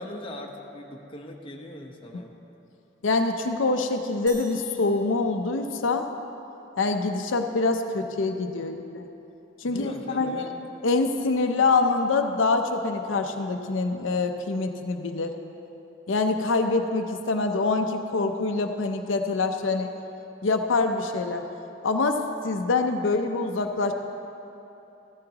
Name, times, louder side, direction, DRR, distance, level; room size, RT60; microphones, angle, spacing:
voice 1, 0.0-2.3 9.6-10.5, left 1 dB, 30° left, 0 dB, 1.0 m, -40 dB
voice 2, 3.0-6.1 6.8-9.1 9.6-10.5 10.8-15.3 16.1-19.9 20.4-21.4 21.8-23.9, left 3 dB, 90° left, 5 dB, 0.6 m, -25 dB
sound 1, 4.3-6.2, right 1 dB, 25° right, 2.5 m, -49 dB
15.0 x 13.5 x 2.9 m, 3.0 s
head